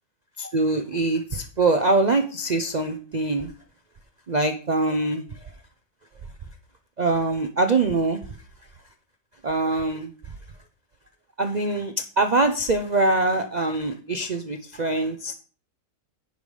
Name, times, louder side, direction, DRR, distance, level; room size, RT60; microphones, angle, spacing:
voice 1, 0.4-3.5 4.3-5.2 7.0-8.2 9.4-10.1 11.4-15.3, right 2 dB, 60° right, 7 dB, 0.4 m, -23 dB
10.0 x 4.9 x 5.4 m, 0.40 s
omnidirectional pair, 1.7 m